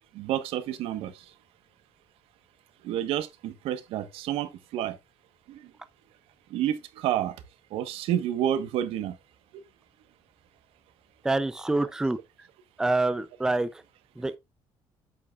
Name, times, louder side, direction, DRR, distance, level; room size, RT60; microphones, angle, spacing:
voice 1, 0.1-1.1 2.8-4.9 5.5-5.6 6.5-7.3 7.7-9.1 9.5-9.6, right 11 dB, 85° right, 1.3 m, -29 dB
voice 2, 11.2-12.2 12.8-13.7 14.2-14.4, right 2 dB, 5° right, 0.5 m, -26 dB
8.6 x 8.5 x 2.4 m
cardioid pair, 150°, 9 cm